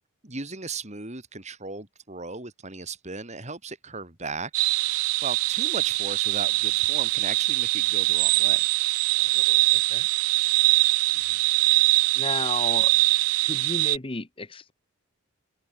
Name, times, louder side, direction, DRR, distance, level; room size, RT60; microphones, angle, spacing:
voice 1, 0.2-8.7 11.3-11.4, right 3 dB, 35° right, 3.3 m, -37 dB
sound 1, 4.5-14.0, right 22 dB, 80° right, 0.3 m, -23 dB
voice 2, 9.2-10.1 12.1-12.9 13.4-14.7, left 3 dB, 25° left, 1.0 m, -34 dB
open air
head